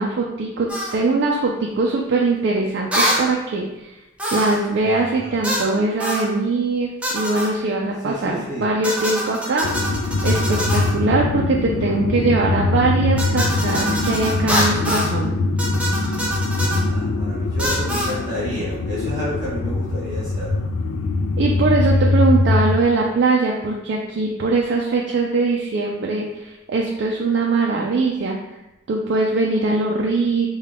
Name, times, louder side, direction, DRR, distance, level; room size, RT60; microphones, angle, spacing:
voice 1, 0.0-3.9 4.3-9.7 10.2-15.3 21.4-28.4 28.9-30.5, right 3 dB, 60° right, -1 dB, 0.4 m, -21 dB
sound 1, 0.7-1.0 2.9-3.3 4.2-4.7 5.4-5.7 6.0-6.3 7.0-7.5 8.8-11.0 13.2-15.1 15.6-16.8 17.6-18.2, equal, 5° right, 0.5 m, -24 dB
voice 2, 4.8-5.3 8.0-8.7 16.5-20.5, left 1 dB, 25° right, -10 dB, 1.2 m, -31 dB
sound 2, 9.6-22.8, left 2 dB, 90° left, 0.3 m, -22 dB
3.5 x 2.3 x 3.4 m, 0.98 s
head